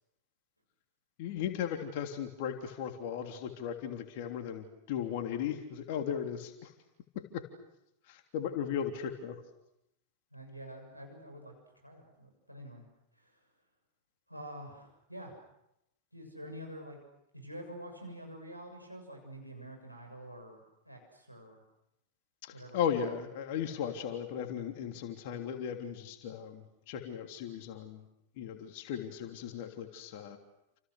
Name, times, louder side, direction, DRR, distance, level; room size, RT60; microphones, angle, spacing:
voice 1, 1.2-6.7 7.1-7.5 8.1-9.4 22.4-28.0 28.4-30.4, left 8 dB, 50° left, 5 dB, 3.2 m, -36 dB
voice 2, 10.3-12.8 13.2-13.3 14.3-15.4 16.1-17.0 17.3-21.6 22.5-23.0, equal, 90° right, 2 dB, 6.9 m, -47 dB
30.0 x 28.0 x 6.5 m, 0.84 s
figure-of-eight pair, 90°, 0 cm